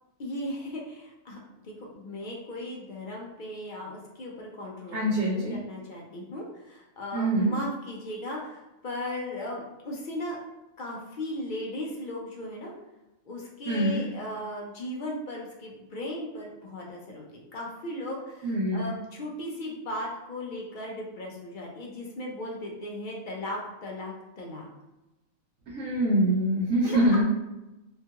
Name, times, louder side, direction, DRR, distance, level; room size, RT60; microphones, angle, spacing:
voice 1, 0.2-1.4 1.6-10.4 10.8-12.7 13.3-24.7 26.8-27.1, left 1 dB, 65° left, -2 dB, 0.4 m, -37 dB
voice 2, 4.9-5.6 7.1-7.6 13.7-14.1 18.4-19.0 25.7-27.2, right 1 dB, 75° right, -5 dB, 1.0 m, -25 dB
2.9 x 2.3 x 2.7 m, 0.99 s
omnidirectional pair, 1.4 m